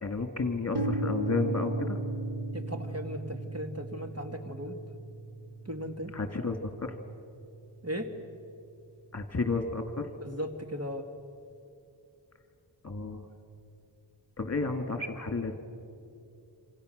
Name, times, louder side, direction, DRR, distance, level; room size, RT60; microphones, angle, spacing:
voice 1, 0.0-2.0 6.1-7.0 9.1-10.1 12.8-13.3 14.4-15.6, left 3 dB, 35° left, 6 dB, 2.3 m, -32 dB
sound 1, 0.7-8.6, right 2 dB, 60° right, 1.9 m, -36 dB
voice 2, 2.5-4.8 5.7-6.1 7.8-8.1 10.2-11.1, equal, 35° right, 5 dB, 2.0 m, -37 dB
27.0 x 26.5 x 6.6 m, 2.6 s
wide cardioid pair, 80°, 44 cm